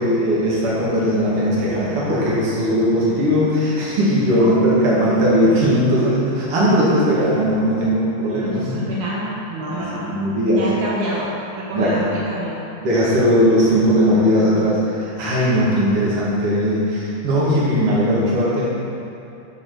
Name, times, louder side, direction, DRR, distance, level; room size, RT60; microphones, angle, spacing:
voice 1, 0.0-8.8 9.7-10.6 11.7-12.0 12.8-18.7, equal, 50° right, -8 dB, 2.5 m, -18 dB
voice 2, 8.4-10.0 10.5-11.3 11.5-12.6, right 1 dB, 75° right, -6 dB, 2.5 m, -27 dB
6.6 x 4.9 x 6.4 m, 2.9 s
omnidirectional pair, 3.5 m